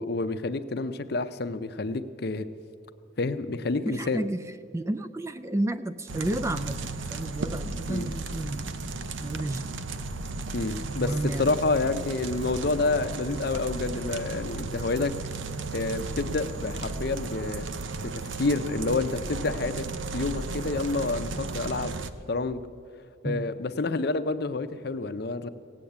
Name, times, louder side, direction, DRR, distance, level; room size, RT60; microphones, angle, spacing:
voice 1, 0.0-2.5 3.2-4.3 7.9-8.1 10.5-15.1 15.7-17.7 18.0-19.8 20.1-21.9 22.3-22.6 23.2-25.5, left 3 dB, 55° left, 11 dB, 0.6 m, -28 dB
voice 2, 3.9-4.4 4.7-8.7 9.2-9.7 11.0-11.6 23.2-23.5, right 1 dB, 15° right, 11 dB, 0.3 m, -31 dB
sound 1, 6.1-22.1, right 3 dB, 80° right, 0.7 m, -35 dB
17.0 x 8.7 x 8.0 m, 2.6 s
head